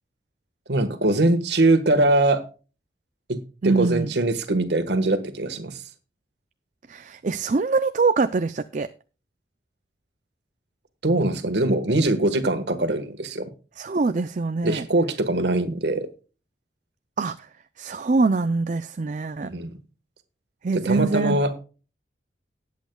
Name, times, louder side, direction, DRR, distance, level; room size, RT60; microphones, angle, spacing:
voice 1, 0.7-2.4 3.3-5.8 11.0-13.5 14.6-16.1 19.4-19.7 20.8-21.5, right 2 dB, 70° right, 9 dB, 1.5 m, -22 dB
voice 2, 3.6-4.1 6.9-8.9 13.8-14.9 17.2-17.5 17.8-19.5 20.6-21.4, right 4 dB, 45° right, 10 dB, 0.4 m, -24 dB
18.5 x 8.4 x 2.3 m, 0.34 s
head